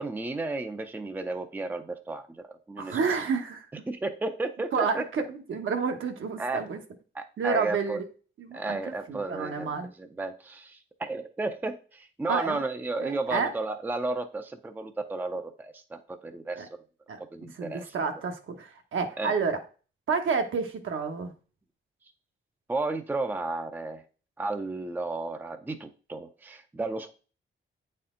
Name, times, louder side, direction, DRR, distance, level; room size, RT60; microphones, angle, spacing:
voice 1, 0.0-3.0 3.9-5.1 6.4-6.6 7.1-8.0 8.5-16.7 17.3-17.9 19.2-19.3 22.7-24.0 24.4-27.1, right 2 dB, 10° right, 8 dB, 0.5 m, -33 dB
voice 2, 2.8-3.7 4.7-6.8 7.4-8.1 8.4-9.9 12.3-12.6 13.0-13.5 16.5-16.7 17.1-19.6 20.1-21.3, right 5 dB, 70° right, 5 dB, 1.1 m, -30 dB
8.9 x 4.3 x 3.7 m, 0.37 s
wide cardioid pair, 160°, 21 cm